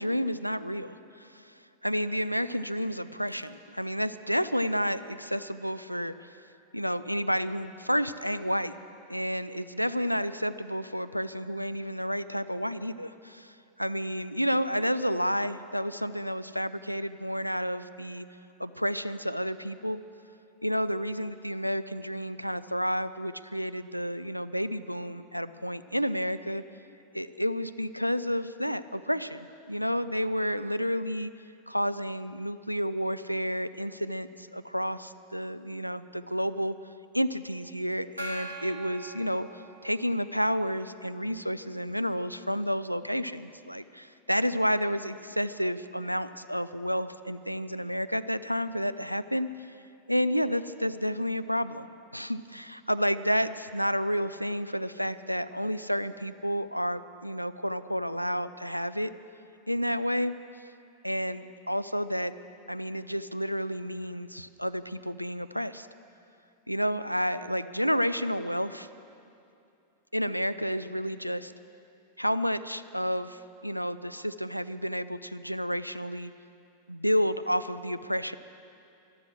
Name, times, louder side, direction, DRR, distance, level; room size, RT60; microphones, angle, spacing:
voice 1, 0.0-1.5 1.8-6.4 6.7-8.8 9.1-18.3 18.6-20.0 20.6-26.6 27.1-31.3 31.7-36.8 37.1-49.5 50.1-51.9 52.1-59.1 59.7-60.4 61.0-62.3 62.7-65.9 66.7-68.9 70.1-71.5 72.2-76.3 76.9-78.4, equal, 90° left, 13 dB, 0.4 m, -30 dB
Gong, 38.2-40.2, right 1 dB, 85° right, 1.6 m, -41 dB
12.5 x 12.5 x 7.6 m, 2.6 s
figure-of-eight pair, 90°, 0 cm